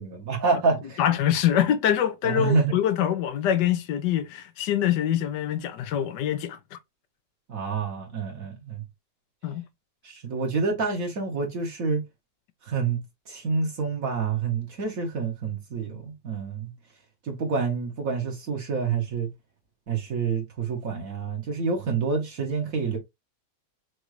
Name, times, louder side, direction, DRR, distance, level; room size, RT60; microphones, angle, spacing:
voice 1, 0.0-1.0 2.2-2.7 7.5-8.8 10.0-12.0 12.6-13.0 13.3-16.7 17.2-19.3 19.9-23.0, right 4 dB, 55° right, 1.5 m, -27 dB
voice 2, 1.0-6.8 9.4-9.6, left 10 dB, 85° left, 1.3 m, -24 dB
6.3 x 2.5 x 3.1 m
omnidirectional pair, 1.8 m